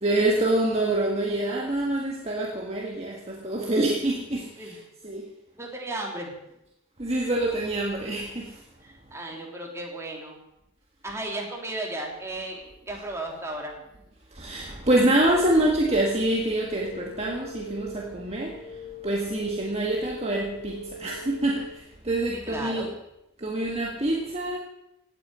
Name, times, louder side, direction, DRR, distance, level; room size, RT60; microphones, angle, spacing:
voice 1, 0.0-4.8 5.0-5.3 7.0-8.6 14.3-22.9 23.4-24.6, right 1 dB, 30° right, -1 dB, 1.7 m, -26 dB
voice 2, 5.6-6.3 8.8-10.4 11.0-13.7 22.5-22.9, right 2 dB, 15° right, 0 dB, 3.3 m, -34 dB
sound 1, 15.3-21.7, left 2 dB, 55° left, 2.5 m, -42 dB
17.0 x 9.0 x 8.8 m, 0.86 s
head